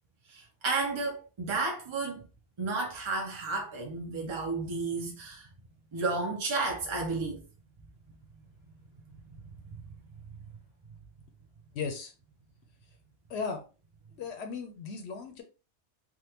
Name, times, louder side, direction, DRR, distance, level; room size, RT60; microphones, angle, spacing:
voice 1, 0.3-2.2 2.6-5.5 5.9-7.4, right 3 dB, 45° right, 0.3 m, -32 dB
voice 2, 11.7-12.1 13.3-13.6 14.2-15.4, left 5 dB, 70° left, 0.8 m, -36 dB
3.5 x 2.2 x 2.8 m
omnidirectional pair, 1.2 m